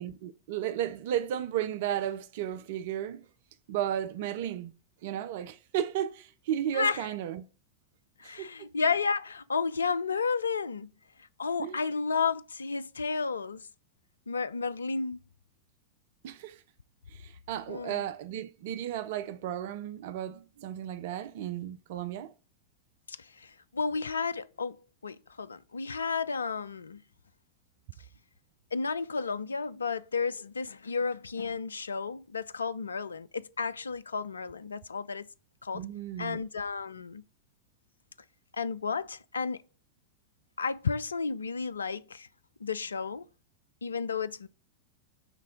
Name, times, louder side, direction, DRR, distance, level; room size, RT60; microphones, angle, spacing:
voice 1, 0.0-3.2 3.7-4.7 5.0-7.4 8.2-8.5 11.6-11.8 16.2-16.6 17.1-22.3 35.7-36.4, right 10 dB, 50° right, 0.4 m, -34 dB
voice 2, 6.7-7.1 8.2-10.9 11.4-13.6 14.3-15.2 17.7-18.0 23.1-24.8 25.0-27.0 28.7-35.3 35.6-35.9 36.2-37.2 38.6-39.6 40.6-42.3 42.6-43.2 43.8-44.5, left 5 dB, 75° left, 0.3 m, -32 dB
9.1 x 3.3 x 3.6 m
figure-of-eight pair, 90°, 0 cm